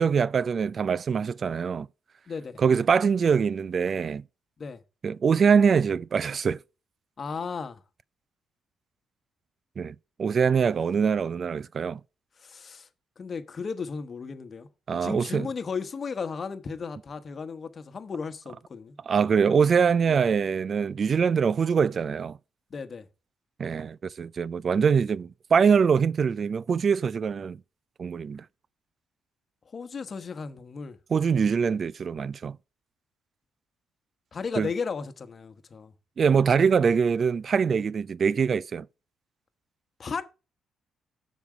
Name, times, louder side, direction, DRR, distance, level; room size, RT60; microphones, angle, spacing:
voice 1, 0.0-1.9 2.6-4.2 5.0-6.6 9.8-12.0 14.9-15.5 19.1-22.4 23.6-27.6 28.0-28.4 31.1-32.6 34.6-34.7 36.2-38.9, right 6 dB, 45° right, 0.4 m, -23 dB
voice 2, 2.3-2.6 4.6-4.8 7.2-7.8 12.4-12.9 13.2-19.0 20.1-20.2 22.7-23.1 29.7-31.0 34.3-35.9 40.0-40.2, left 5 dB, 40° left, 1.1 m, -35 dB
7.1 x 6.1 x 4.8 m
cardioid pair, 90°, 0 cm